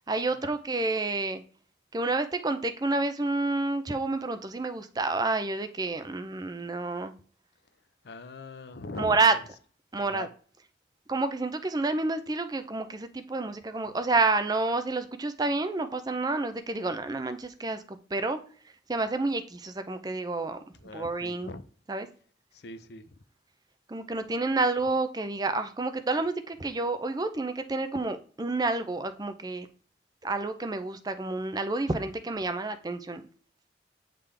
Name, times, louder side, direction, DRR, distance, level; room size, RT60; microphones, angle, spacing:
voice 1, 0.1-1.4 1.9-7.1 9.0-9.3 9.9-10.3 11.1-18.4 18.9-20.6 20.9-21.5 21.9-22.1 23.9-29.7 30.2-33.2, right 3 dB, 20° right, 0.5 m, -29 dB
voice 2, 8.0-9.4 9.9-10.3 20.8-21.6 22.5-23.2, left 3 dB, 60° left, 0.6 m, -42 dB
8.3 x 3.7 x 3.3 m
head